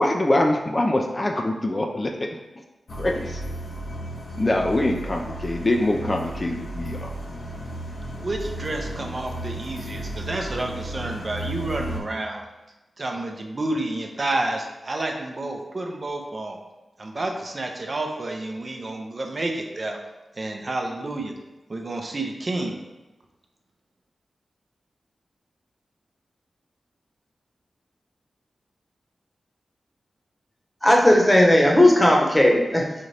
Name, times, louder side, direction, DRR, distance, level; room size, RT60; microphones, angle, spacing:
voice 1, 0.0-2.4 2.9-3.5 4.4-7.1, left 1 dB, 40° left, 2 dB, 0.4 m, -24 dB
sound 1, 2.9-12.0, right 1 dB, 70° left, 0.7 m, -34 dB
voice 2, 8.2-12.4 13.0-16.6 17.0-20.0 20.4-21.4 21.7-22.8, right 2 dB, 50° right, 2 dB, 0.6 m, -30 dB
voice 3, 30.8-33.1, left 1 dB, 20° left, 0 dB, 0.9 m, -16 dB
4.1 x 2.5 x 3.2 m, 1.0 s
cardioid pair, 40°, 0 cm